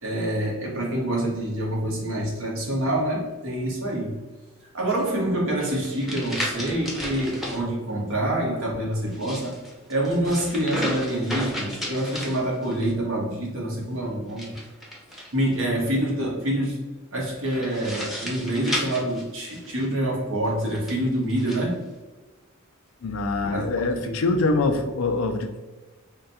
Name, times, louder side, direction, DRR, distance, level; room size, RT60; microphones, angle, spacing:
voice 1, 0.0-4.2 4.7-9.6 9.9-14.6 15.3-21.9 23.4-24.2, right 1 dB, 70° right, -4 dB, 1.3 m, -26 dB
sound 1, 5.6-7.6 9.0-12.9 14.3-15.6 17.5-19.9 20.6-21.6, equal, ahead, 0.7 m, -33 dB
voice 2, 23.0-25.6, left 3 dB, 80° left, 6 dB, 0.5 m, -24 dB
3.7 x 2.3 x 4.1 m, 1.2 s
head